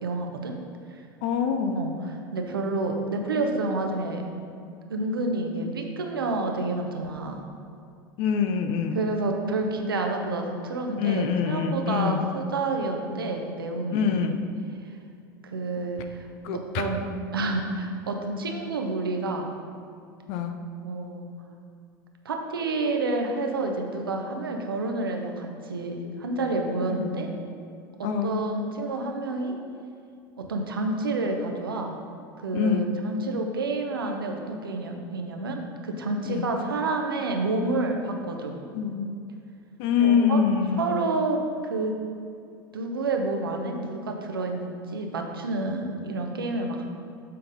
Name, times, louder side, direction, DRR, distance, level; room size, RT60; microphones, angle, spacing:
voice 1, 0.0-0.5 1.8-1.9 2.3-4.2 4.9-7.4 8.9-14.1 15.4-16.3 16.5-17.0 17.3-19.5 20.8-21.3 22.2-27.3 28.0-29.5 30.4-32.0 32.4-38.5 40.0-40.4 40.8-42.0 42.7-46.8, right 2 dB, 90° right, 3 dB, 0.9 m, -29 dB
voice 2, 1.2-1.8 3.3-3.6 8.2-9.0 11.0-12.3 13.9-14.4 16.4-16.9 20.3-20.6 26.9-27.1 28.0-28.4 32.5-33.0 36.3-36.4 38.7-39.1 39.8-40.8, left 6 dB, 60° left, 7 dB, 0.7 m, -25 dB
7.6 x 4.1 x 5.3 m, 2.5 s
hypercardioid pair, 85°, 12 cm